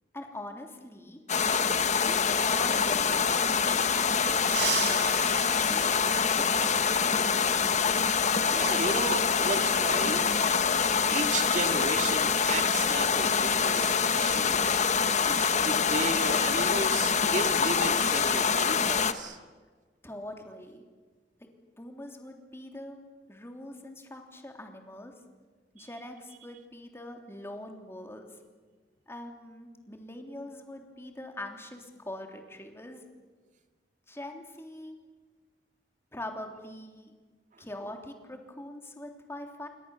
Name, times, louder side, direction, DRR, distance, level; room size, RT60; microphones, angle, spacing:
voice 1, 0.1-1.2 2.0-4.1 4.7-5.2 5.7-5.8 6.4-7.4 20.0-20.8 21.4-21.5 21.8-23.0 23.3-25.1 25.7-28.4 29.1-33.0 34.1-35.0 36.1-37.1 37.6-39.7, left 1 dB, 15° left, 3 dB, 3.2 m, -43 dB
sound 1, 1.3-19.1, left 6 dB, 45° left, 1.3 m, -25 dB
sound 2, 4.4-6.8 8.5-8.6 9.8-9.9 11.5-11.7 12.0-12.2 12.7-14.9 15.2-15.4 15.8-16.3, right 7 dB, 85° right, 5.1 m, -37 dB
voice 2, 8.5-14.8 15.3-19.4 25.8-25.9, right 3 dB, 45° right, 6 dB, 2.2 m, -34 dB
28.5 x 23.5 x 7.1 m, 1.4 s
head